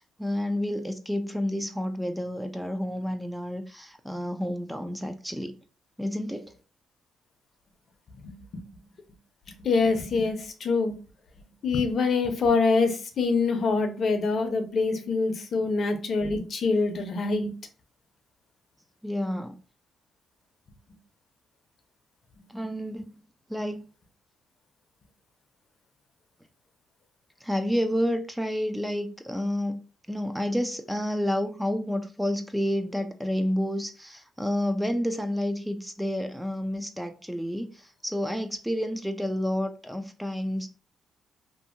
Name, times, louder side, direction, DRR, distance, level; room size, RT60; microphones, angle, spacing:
voice 1, 0.0-5.6 6.0-6.5 19.0-19.6 22.5-23.2 23.5-23.8 27.4-29.8 30.1-40.7, equal, 5° right, 0.3 m, -30 dB
voice 2, 8.2-8.6 9.6-10.9 11.6-17.5, left 4 dB, 55° left, 0.6 m, -25 dB
2.6 x 2.6 x 2.5 m
cardioid pair, 90°, 0 cm